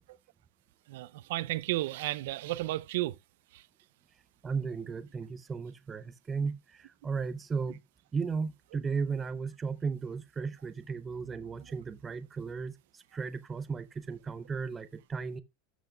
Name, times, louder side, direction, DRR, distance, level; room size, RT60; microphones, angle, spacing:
voice 1, 0.9-3.2 3.5-3.6, right 17 dB, 65° right, 0.4 m, -33 dB
voice 2, 4.4-7.8 8.1-15.4, right 5 dB, 15° right, 0.5 m, -35 dB
13.0 x 6.1 x 2.2 m
supercardioid pair, 175°, 0 cm